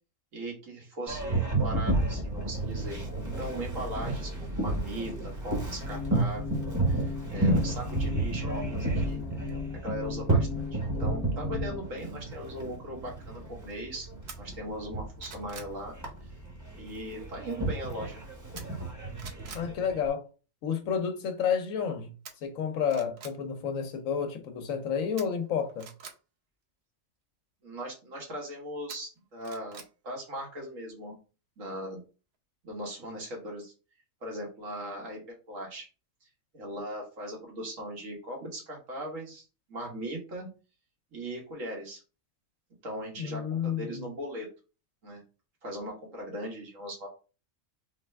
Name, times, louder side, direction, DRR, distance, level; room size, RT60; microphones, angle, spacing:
voice 1, 0.3-9.2 9.7-15.9 16.8-18.2 27.6-31.2 31.6-32.0 32.6-33.7 34.2-35.2 35.5-35.9 36.5-40.5 41.1-42.0 42.8-44.5 45.0-45.2 45.6-47.1, right 1 dB, 80° right, 1.9 m, -39 dB
Boat Water vehicle, 1.1-20.1, right 2 dB, 15° right, 0.9 m, -32 dB
sound 1, 5.8-11.8, left 6 dB, 30° left, 0.6 m, -38 dB
sound 2, 14.3-14.4 14.9-15.8 18.6-18.9 19.2-19.7 22.3-22.4 22.8-23.4 25.2-26.2 28.9-29.9 30.3-30.4, right 6 dB, 60° right, 1.0 m, -45 dB
voice 2, 19.5-20.2 20.6-22.2 22.4-25.9 43.2-44.1, left 7 dB, 85° left, 1.2 m, -30 dB
3.8 x 3.3 x 3.4 m
omnidirectional pair, 1.3 m